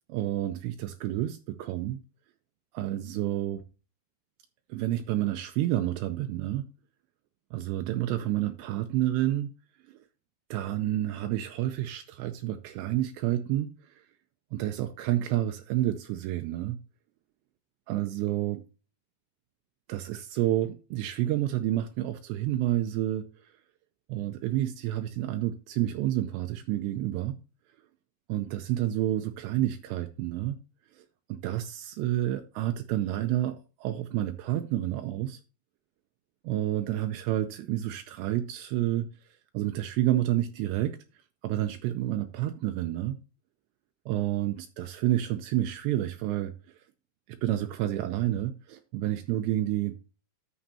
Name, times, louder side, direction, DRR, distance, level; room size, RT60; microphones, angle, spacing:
voice 1, 0.1-2.0 2.7-3.6 4.7-6.7 7.5-9.5 10.5-13.7 14.5-16.8 17.9-18.6 19.9-23.3 24.1-27.4 28.3-30.6 31.0-31.1 31.3-35.4 36.4-39.1 39.5-41.0 41.4-43.2 44.1-46.5 47.4-50.0, right 13 dB, 85° right, 2.6 m, -29 dB
11.5 x 7.2 x 2.8 m
omnidirectional pair, 5.6 m